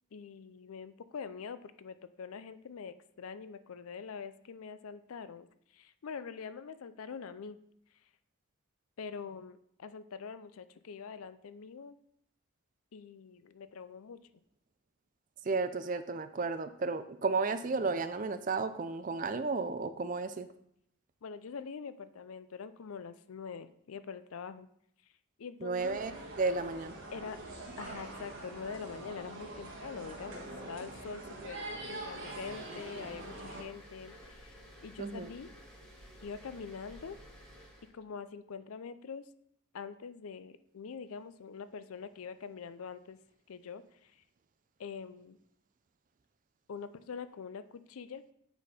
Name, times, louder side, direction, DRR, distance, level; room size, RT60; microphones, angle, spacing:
voice 1, 0.1-5.5 5.7-7.6 9.0-11.9 12.9-14.2 21.2-24.7 25.4-26.0 27.1-27.4 27.8-35.5 36.2-37.2 37.9-39.2 39.7-43.2 43.5-44.2 44.8-45.4 46.7-48.2, left 5 dB, 90° left, 13 dB, 0.5 m, -44 dB
voice 2, 15.4-20.5 25.6-26.1 26.4-27.0 35.0-35.3, right 4 dB, 40° right, 12 dB, 0.4 m, -33 dB
sound 1, 25.8-33.6, right 2 dB, 65° right, 1.5 m, -44 dB
sound 2, 31.8-37.9, equal, 5° left, 1.5 m, -54 dB
8.1 x 4.2 x 4.9 m, 0.73 s
head